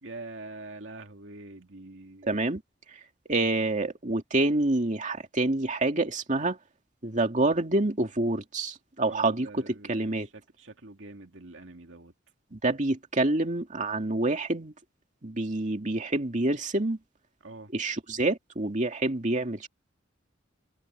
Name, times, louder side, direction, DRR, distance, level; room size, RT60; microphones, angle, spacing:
voice 1, 0.0-2.3 9.0-12.1 17.4-17.7, right 2 dB, 75° right, 2.4 m, -45 dB
voice 2, 2.2-2.6 2.9-3.0 3.3-6.6 7.0-10.3 12.5-14.7 15.2-17.0 17.7-19.7, right 2 dB, 40° right, 2.4 m, -27 dB
head